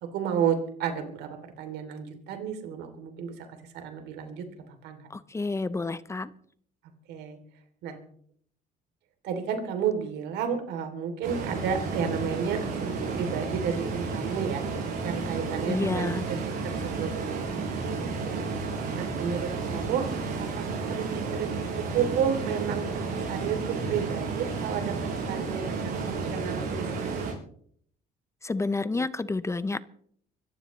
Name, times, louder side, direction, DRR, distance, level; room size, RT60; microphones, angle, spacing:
voice 1, 0.0-5.1 7.1-7.4 7.8-8.0 9.2-14.6 15.0-16.4 16.6-17.4 17.9-18.4 18.9-20.1 20.4-27.3, right 7 dB, 85° right, 6 dB, 3.0 m, -32 dB
voice 2, 5.1-6.3 15.7-16.3 28.4-29.8, left 3 dB, 15° left, 15 dB, 0.6 m, -29 dB
sound 1, 11.2-27.3, right 4 dB, 70° right, 7.4 m, -32 dB
25.0 x 14.5 x 3.2 m, 0.62 s
cardioid pair, 110°, 17 cm